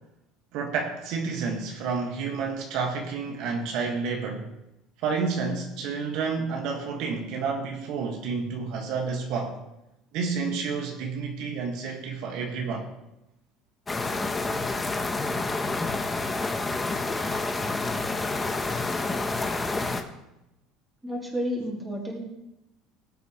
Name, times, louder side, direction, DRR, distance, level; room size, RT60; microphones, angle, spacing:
voice 1, 0.5-4.5 5.0-9.6 10.1-12.9, right 5 dB, 70° right, 1 dB, 1.7 m, -30 dB
sound 1, 13.9-20.0, left 3 dB, 15° left, 1.0 m, -28 dB
voice 2, 21.0-22.3, equal, 10° right, -2 dB, 3.1 m, -31 dB
18.5 x 8.1 x 3.2 m, 0.91 s
cardioid pair, 125°, 0 cm